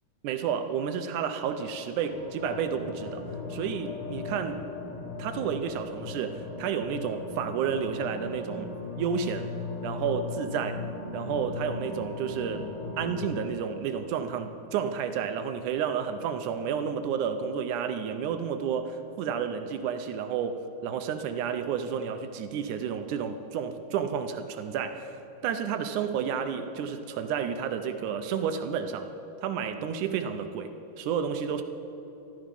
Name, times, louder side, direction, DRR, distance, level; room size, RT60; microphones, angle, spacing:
voice 1, 0.2-3.2 3.5-4.6 5.2-8.7 9.0-9.5 9.8-10.8 11.1-12.7 13.0-25.2 25.4-29.1 29.4-30.7 31.0-31.6, right 7 dB, 80° right, 8 dB, 2.1 m, -31 dB
sound 1, 2.1-13.5, left 4 dB, 55° left, 2.0 m, -38 dB
14.5 x 13.0 x 5.3 m, 2.9 s
omnidirectional pair, 3.7 m